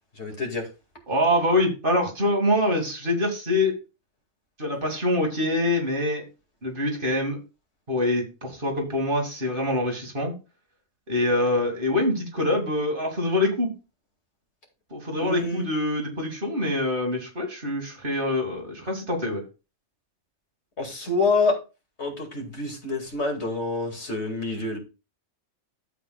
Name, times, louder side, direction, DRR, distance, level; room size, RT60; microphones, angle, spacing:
voice 1, 0.2-0.7 15.2-15.7 20.8-21.6 22.0-24.8, left 3 dB, 65° left, 2 dB, 2.5 m, -27 dB
voice 2, 1.1-3.8 4.6-6.2 6.6-7.4 7.9-10.3 11.1-13.7 14.9-19.4, left 1 dB, 45° right, 1 dB, 2.2 m, -25 dB
11.5 x 7.8 x 2.3 m, 0.30 s
omnidirectional pair, 1.2 m